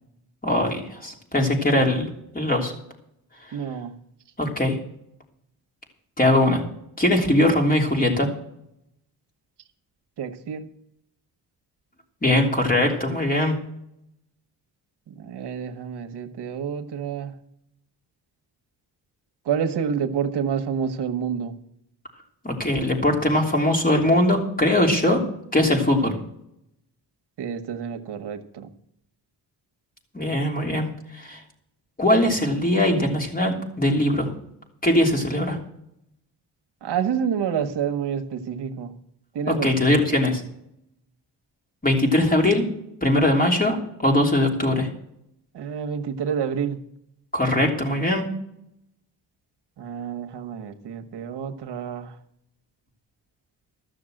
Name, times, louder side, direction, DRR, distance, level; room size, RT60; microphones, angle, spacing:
voice 1, 0.4-2.1 2.3-2.7 4.4-4.8 6.2-6.6 7.0-8.3 12.2-13.5 22.4-25.2 25.5-26.1 30.1-30.9 31.1-31.4 32.0-34.3 34.8-35.6 39.5-40.4 41.8-42.7 43.0-43.8 44.0-44.9 47.3-48.2, left 1 dB, 20° left, 1 dB, 3.1 m, -21 dB
voice 2, 3.5-3.9 10.2-10.7 15.1-17.3 19.4-21.5 27.4-28.7 36.8-38.9 39.3-40.0 45.5-46.8 49.8-52.2, right 7 dB, 80° right, 5 dB, 1.3 m, -28 dB
13.5 x 6.6 x 7.7 m, 0.75 s
cardioid pair, 100°, 40 cm